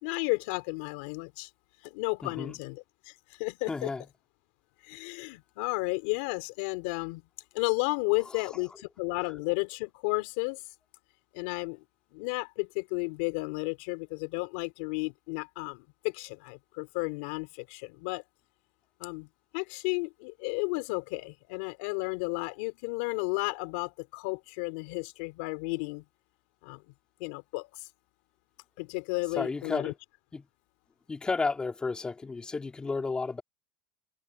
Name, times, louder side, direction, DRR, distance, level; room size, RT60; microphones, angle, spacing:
voice 1, 0.0-1.5 1.8-3.1 3.4-3.9 4.8-7.2 7.5-10.6 11.3-11.8 12.1-18.2 19.0-19.3 19.5-26.0 26.6-26.8 27.2-27.9 28.8-29.9, left 29 dB, 80° left, 3.5 m, -33 dB
voice 2, 2.2-2.5 3.7-4.0 29.3-29.9 30.3-30.4 31.1-33.4, left 4 dB, 15° left, 3.1 m, -32 dB
supercardioid pair, 115°, 5 cm